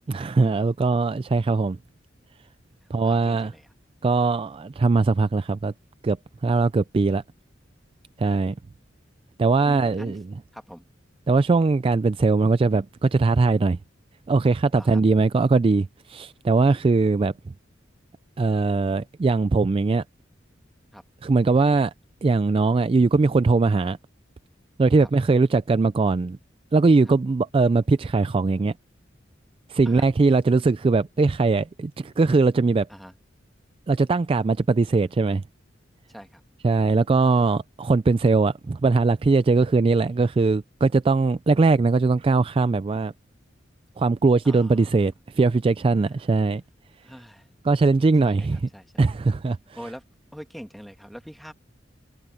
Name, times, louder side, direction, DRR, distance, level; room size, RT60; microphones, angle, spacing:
voice 1, 0.1-1.8 2.9-3.5 4.0-5.7 6.0-6.2 6.4-7.2 8.2-8.6 9.4-10.2 11.3-13.8 14.3-17.3 18.4-20.0 21.2-21.9 22.2-24.0 24.8-26.4 26.7-28.7 29.7-32.9 33.9-35.4 36.6-43.1 44.0-46.6 47.6-48.7 49.0-49.6, right 3 dB, 30° right, 0.3 m, -20 dB
voice 2, 2.8-3.7 9.6-10.2 10.5-10.9 14.7-15.0 20.9-21.0 25.0-25.1 27.1-27.2 29.9-30.4 32.9-33.1 36.1-36.4 44.4-45.0 47.0-47.5 48.2-48.5 48.7-49.1 49.8-50.0 50.3-51.5, equal, ahead, 1.8 m, -43 dB
head